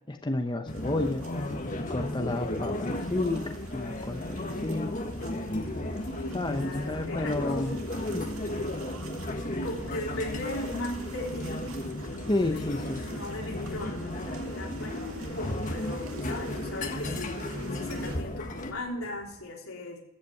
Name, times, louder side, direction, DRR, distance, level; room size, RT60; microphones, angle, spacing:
voice 1, 0.1-1.3 1.7-5.0 6.3-7.8 8.1-8.3 12.3-13.0, left 2 dB, 20° left, 5 dB, 0.8 m, -31 dB
sound 1, 0.7-18.7, left 1 dB, 40° left, 1.4 m, -34 dB
sound 2, 0.7-18.2, right 2 dB, 80° right, 2.2 m, -48 dB
sound 3, 2.2-19.4, right 1 dB, 45° right, 3.8 m, -50 dB
voice 2, 6.1-7.8 9.6-11.5 12.1-20.0, left 2 dB, 85° left, -1 dB, 3.6 m, -38 dB
14.0 x 8.2 x 6.5 m, 0.87 s
head